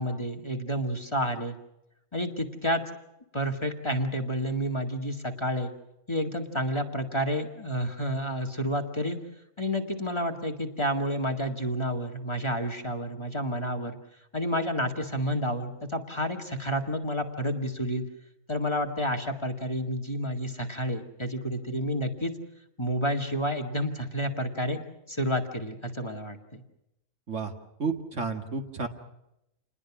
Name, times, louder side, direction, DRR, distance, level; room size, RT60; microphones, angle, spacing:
voice 1, 0.0-1.5 2.1-2.8 3.3-5.7 6.1-9.2 9.6-14.0 14.3-18.0 18.5-22.3 22.8-24.8 25.1-26.6, equal, 20° left, 3 dB, 2.0 m, -30 dB
voice 2, 27.8-28.9, right 4 dB, 60° right, 5 dB, 2.4 m, -31 dB
29.0 x 20.5 x 6.2 m, 0.86 s
omnidirectional pair, 1.4 m